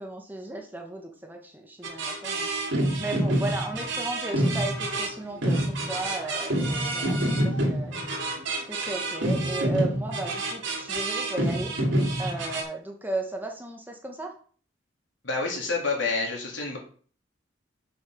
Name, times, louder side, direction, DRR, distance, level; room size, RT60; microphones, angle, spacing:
voice 1, 0.0-2.5 3.0-8.0 8.7-11.7 12.2-14.3, right 2 dB, 10° right, 2 dB, 1.2 m, -35 dB
sound 1, 1.8-12.6, right 1 dB, 80° right, 2.5 m, -27 dB
voice 2, 15.2-16.8, left 3 dB, 75° left, 0 dB, 3.0 m, -28 dB
6.7 x 5.7 x 5.8 m, 0.44 s
head